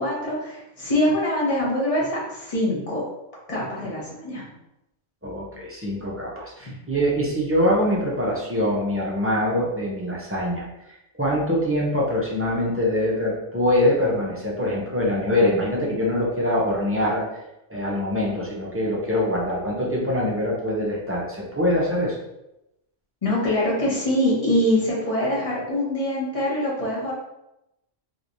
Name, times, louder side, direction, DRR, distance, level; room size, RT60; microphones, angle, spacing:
voice 1, 0.0-3.0 3.5-4.5 23.2-27.1, left 1 dB, 30° left, -6 dB, 1.1 m, -24 dB
voice 2, 5.2-10.6 11.2-17.4 17.7-22.2, left 1 dB, 15° right, -5 dB, 0.5 m, -24 dB
3.1 x 3.0 x 2.6 m, 0.88 s
omnidirectional pair, 1.2 m